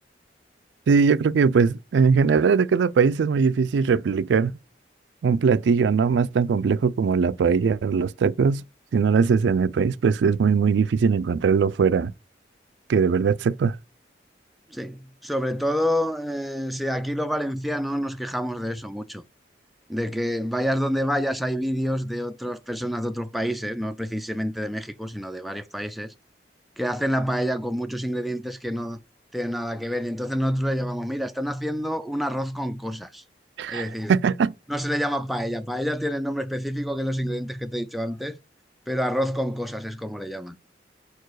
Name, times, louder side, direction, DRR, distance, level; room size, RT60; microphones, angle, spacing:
voice 1, 0.9-4.5 5.2-8.6 8.9-12.1 12.9-13.8 33.6-34.5, right 5 dB, 85° right, 0.4 m, -20 dB
voice 2, 14.7-19.2 19.9-26.1 26.8-29.0 29.3-33.2 33.7-34.2 34.7-38.4 38.9-40.6, equal, ahead, 0.4 m, -28 dB
4.9 x 4.5 x 4.6 m
head